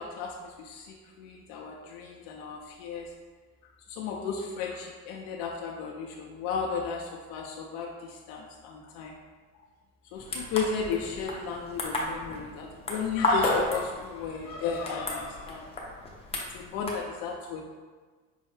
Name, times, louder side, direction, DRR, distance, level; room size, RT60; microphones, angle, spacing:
voice 1, 0.0-3.1 3.9-9.1 10.1-15.7 16.5-17.6, left 5 dB, 85° left, 0 dB, 0.5 m, -34 dB
sound 1, 10.2-17.0, left 1 dB, 20° left, 0.5 m, -33 dB
5.5 x 2.1 x 3.1 m, 1.4 s
cardioid pair, 130°, 34 cm